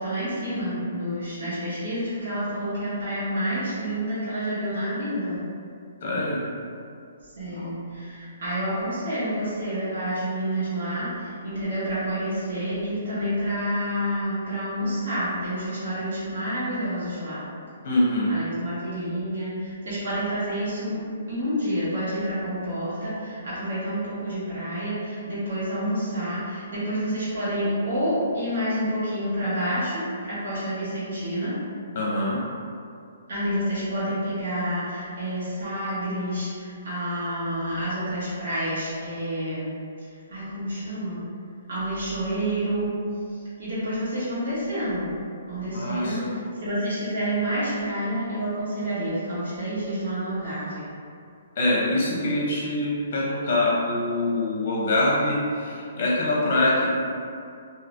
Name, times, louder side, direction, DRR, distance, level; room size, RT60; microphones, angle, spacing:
voice 1, 0.0-5.4 7.3-17.4 18.3-21.0 21.3-31.6 33.3-39.7 40.1-41.2 41.7-42.9 43.6-45.1 45.5-50.8, equal, 70° right, -11 dB, 1.1 m, -28 dB
voice 2, 6.0-6.4 7.5-7.7 17.8-18.3 31.9-32.4 45.7-46.3 51.6-56.9, left 1 dB, 50° left, -5 dB, 0.8 m, -24 dB
3.2 x 2.7 x 2.5 m, 2.3 s
hypercardioid pair, 140°, 0 cm